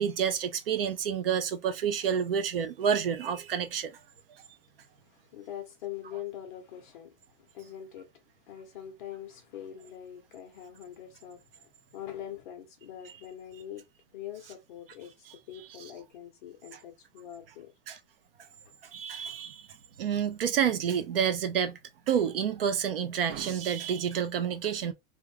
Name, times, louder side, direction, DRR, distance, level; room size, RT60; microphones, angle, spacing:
voice 1, 0.0-4.0 17.9-18.0 18.9-21.8 22.1-24.9, right 8 dB, 45° right, 0.4 m, -29 dB
voice 2, 5.0-8.1 8.5-13.8 14.1-17.7, left 11 dB, 35° left, 0.8 m, -43 dB
3.5 x 2.2 x 3.2 m
supercardioid pair, 180°, 44 cm